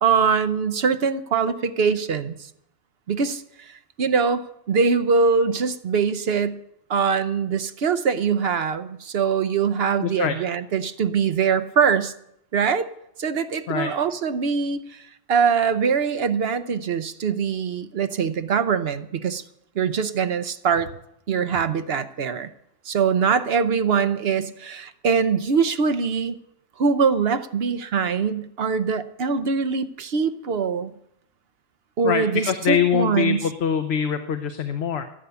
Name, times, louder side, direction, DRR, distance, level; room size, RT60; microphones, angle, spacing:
voice 1, 0.0-2.4 3.1-6.6 6.9-12.1 12.5-12.9 13.2-15.0 15.3-19.4 19.8-20.9 21.3-22.5 22.9-26.4 26.8-30.9 32.0-33.4, right 6 dB, 60° right, 12 dB, 1.0 m, -23 dB
voice 2, 10.0-10.4 13.7-13.9 32.0-35.0, left 8 dB, 65° left, 8 dB, 1.0 m, -24 dB
15.0 x 9.6 x 6.9 m, 0.79 s
omnidirectional pair, 1.2 m